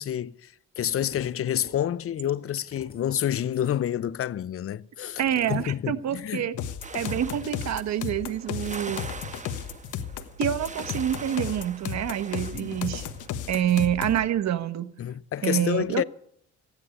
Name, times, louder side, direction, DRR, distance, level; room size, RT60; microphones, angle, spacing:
voice 1, 0.0-5.2 5.5-6.5 12.5-12.7 15.0-16.0, left 10 dB, 50° left, 0.6 m, -28 dB
sound 1, 0.8-1.3 1.6-3.9 5.2-5.7 6.0-6.2 7.6-8.0 8.5-8.9 9.5-10.0 10.6-11.3 11.8-12.0 12.3-13.1 13.6-14.0, left 3 dB, 30° left, 4.9 m, -49 dB
voice 2, 5.2-6.5 6.9-9.0 10.4-13.1 13.5-14.9 15.4-16.0, right 10 dB, 65° right, 1.1 m, -27 dB
sound 2, 6.6-14.3, left 9 dB, 80° left, 1.3 m, -34 dB
sound 3, 6.8-13.4, right 4 dB, 25° right, 1.3 m, -43 dB
15.0 x 10.5 x 8.3 m
cardioid pair, 90°, 30 cm